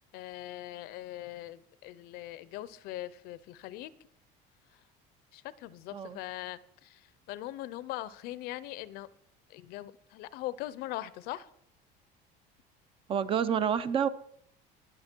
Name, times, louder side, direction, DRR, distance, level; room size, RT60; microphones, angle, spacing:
voice 1, 0.0-3.9 5.3-9.1 9.5-11.5, left 15 dB, 60° left, 18 dB, 0.6 m, -41 dB
voice 2, 13.1-14.1, right 8 dB, 30° right, 15 dB, 0.4 m, -28 dB
19.5 x 6.6 x 4.4 m, 0.69 s
cardioid pair, 165°, 18 cm